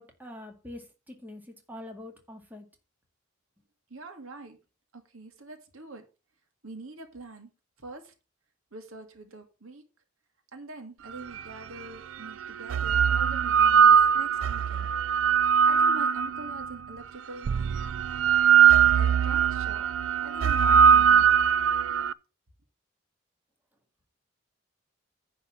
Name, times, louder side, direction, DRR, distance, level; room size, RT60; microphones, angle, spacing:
voice 1, 0.0-2.7, left 1 dB, 10° right, 2.0 m, -44 dB
voice 2, 3.9-4.6 4.9-6.0 6.6-7.5 7.8-8.1 8.7-9.8 10.5-14.9 15.7-17.5 18.9-21.3 21.9-22.0, right 2 dB, 90° right, 2.1 m, -44 dB
sound 1, 11.4-11.5 12.4-16.7 17.4-22.1, right 8 dB, 70° right, 0.4 m, -21 dB
10.0 x 4.0 x 7.3 m
head